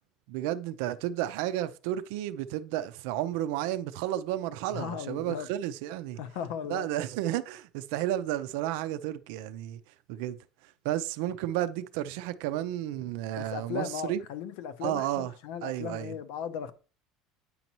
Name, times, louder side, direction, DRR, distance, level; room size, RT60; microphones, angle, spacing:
voice 1, 0.3-6.2 6.7-9.8 10.1-10.4 10.8-14.2 14.8-15.3 15.6-16.1, right 13 dB, 70° right, 0.5 m, -32 dB
voice 2, 4.7-5.5 6.2-6.9 13.4-16.7, left 8 dB, 70° left, 0.7 m, -37 dB
8.6 x 5.3 x 3.0 m
cardioid pair, 165°, 0 cm